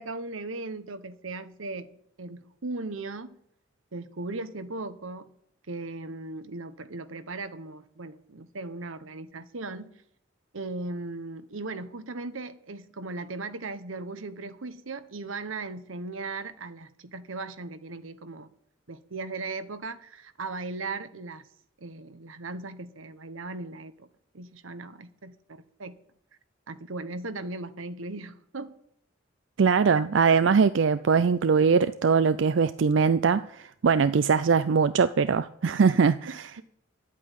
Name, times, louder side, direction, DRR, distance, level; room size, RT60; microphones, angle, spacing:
voice 1, 0.0-3.4 3.9-5.3 5.7-10.0 10.5-18.5 18.9-21.4 21.8-24.1 24.3-26.0 26.7-28.7 36.3-36.6, right 3 dB, 85° right, 1.0 m, -38 dB
voice 2, 29.6-36.5, right 5 dB, 65° right, 0.4 m, -22 dB
12.0 x 8.5 x 9.1 m
head